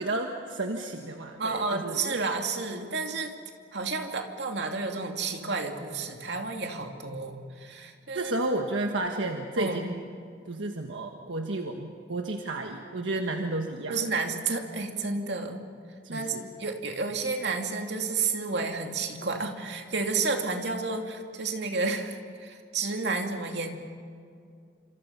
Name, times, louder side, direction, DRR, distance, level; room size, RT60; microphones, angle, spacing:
voice 1, 0.0-2.1 8.1-9.9 10.5-14.0 16.0-16.5, right 2 dB, 85° right, 3 dB, 1.5 m, -32 dB
voice 2, 1.4-3.3 3.7-8.3 9.6-9.8 13.9-15.6 16.1-23.7, right 4 dB, 65° right, 3 dB, 2.5 m, -31 dB
28.0 x 27.0 x 5.7 m, 2.3 s
head